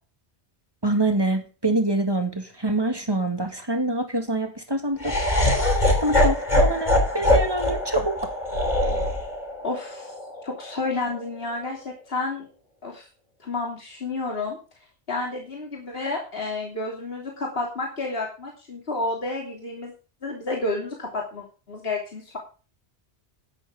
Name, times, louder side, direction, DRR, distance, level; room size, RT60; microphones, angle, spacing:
voice 1, 0.8-5.2 6.0-8.2, right 2 dB, 20° right, 6 dB, 2.1 m, -25 dB
Laughter, 5.0-11.1, left 1 dB, 40° left, 6.1 m, -23 dB
voice 2, 9.6-10.2 10.4-12.5 12.8-13.1 13.4-14.6 15.1-19.9 20.2-22.4, left 2 dB, 60° left, -1 dB, 3.4 m, -30 dB
12.5 x 12.0 x 3.8 m, 0.34 s
omnidirectional pair, 1.1 m